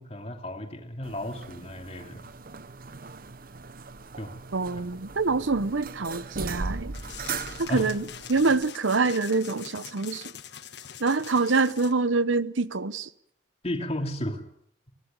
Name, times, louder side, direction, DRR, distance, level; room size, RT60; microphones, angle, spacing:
voice 1, 0.0-2.2 4.2-4.3 7.7-7.9 13.6-14.4, left 1 dB, 30° left, 2.8 m, -33 dB
sound 1, 1.0-8.7, right 4 dB, 50° right, 0.9 m, -39 dB
voice 2, 4.5-7.0 7.6-10.3 11.0-13.1, right 3 dB, 85° right, 0.9 m, -25 dB
sound 2, 6.9-11.9, left 9 dB, 60° left, 1.4 m, -44 dB
23.0 x 17.0 x 9.0 m
head